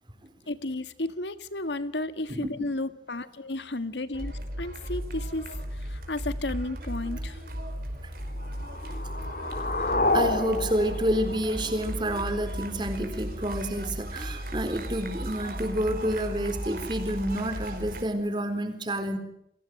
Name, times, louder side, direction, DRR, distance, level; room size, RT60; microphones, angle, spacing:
voice 1, 0.5-7.4, left 2 dB, 85° left, 12 dB, 1.7 m, -33 dB
sound 1, 4.1-18.0, right 1 dB, 55° right, 5.1 m, -36 dB
sound 2, 8.4-12.4, left 2 dB, 50° left, 3.0 m, -30 dB
voice 2, 10.1-19.2, right 1 dB, 25° right, 8 dB, 4.3 m, -29 dB
29.5 x 22.5 x 7.8 m, 0.74 s
head